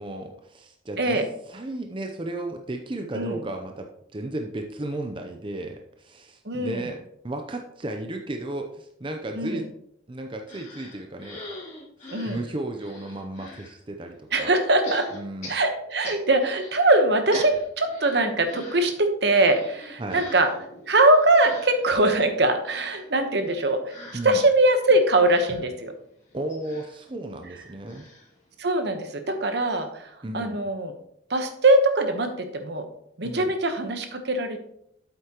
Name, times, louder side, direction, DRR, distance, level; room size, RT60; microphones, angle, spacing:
voice 1, 0.0-9.7 10.1-11.4 12.3-14.5 15.1-15.5 20.0-20.2 24.1-24.4 26.3-28.1 30.2-30.6 33.2-33.5, right 1 dB, 25° right, 4 dB, 0.6 m, -34 dB
voice 2, 6.4-6.9 9.4-9.6 12.1-12.4 14.3-15.1 15.5-20.5 20.9-23.8 24.2-25.9 28.6-30.9 31.3-32.9 33.2-34.6, right 2 dB, 65° right, 7 dB, 1.0 m, -22 dB
sound 1, 10.5-13.7 14.8-16.8 17.1-29.0 29.4-29.5 29.7-29.8, left 2 dB, 40° left, 2.8 m, -43 dB
8.5 x 7.9 x 3.0 m, 0.73 s
head